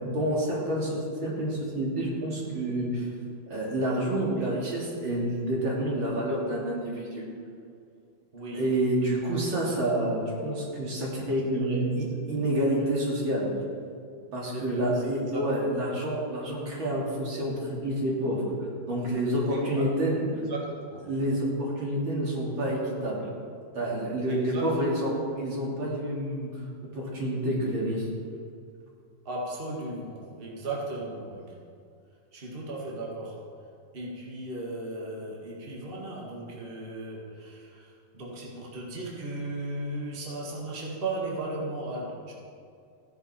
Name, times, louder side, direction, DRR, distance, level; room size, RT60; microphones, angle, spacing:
voice 1, 0.0-3.1 3.5-7.2 8.5-13.5 14.3-18.4 18.8-20.2 21.1-23.2 23.7-26.5 26.9-28.1, right 1 dB, 70° right, -4 dB, 3.3 m, -28 dB
voice 2, 8.3-8.7 11.5-11.9 12.2-12.9 14.5-15.8 19.2-19.9 20.2-21.1 24.3-25.1 29.3-31.6 32.3-33.5 33.9-42.3, right 2 dB, 25° right, -3 dB, 2.0 m, -36 dB
15.5 x 10.5 x 4.4 m, 2.3 s
omnidirectional pair, 2.3 m